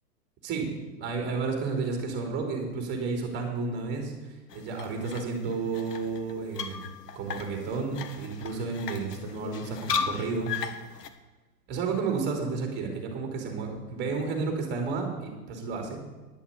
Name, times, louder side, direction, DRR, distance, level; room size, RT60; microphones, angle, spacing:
voice 1, 0.4-0.7 1.0-6.8 7.1-10.5 11.7-16.0, right 4 dB, 20° right, 3 dB, 3.1 m, -32 dB
sound 1, 4.5-11.1, left 6 dB, 80° left, 1.4 m, -36 dB
10.5 x 7.2 x 8.3 m, 1.2 s
hypercardioid pair, 140°, 48 cm